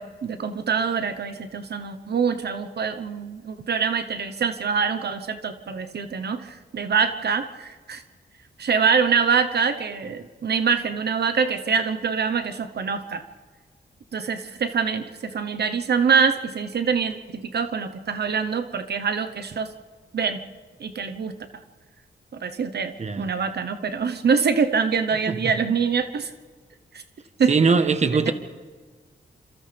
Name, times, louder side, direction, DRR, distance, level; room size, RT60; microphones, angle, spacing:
voice 1, 0.0-8.0 8.6-13.2 14.1-19.7 20.1-20.4 20.8-21.3 22.3-26.3 26.9-27.0 27.4-27.5 28.3-28.4, right 6 dB, 65° right, 1.1 m, -24 dB
voice 2, 23.0-23.3 25.3-25.4 27.5-28.3, right 4 dB, 40° right, 1.3 m, -20 dB
29.5 x 27.0 x 3.5 m
wide cardioid pair, 145°, 19 cm